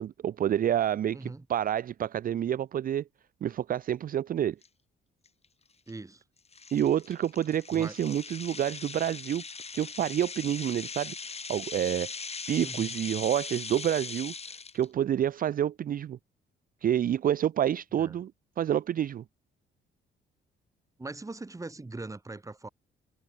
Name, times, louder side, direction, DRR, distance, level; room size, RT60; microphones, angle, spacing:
voice 1, 0.0-3.0 3.4-4.6 6.7-9.4 9.7-11.1 11.5-12.1 12.5-14.3 14.7-16.2 16.8-18.3 18.6-19.2, right 10 dB, 45° right, 0.5 m, -28 dB
voice 2, 1.1-1.5 5.9-6.2 7.7-8.0 12.6-12.9 18.0-18.2 21.0-22.7, right 2 dB, 15° right, 1.9 m, -41 dB
sound 1, 4.6-4.7 5.3-5.4 5.9-6.0 6.5-14.8, left 5 dB, 30° left, 2.9 m, -40 dB
cardioid pair, 90°, 20 cm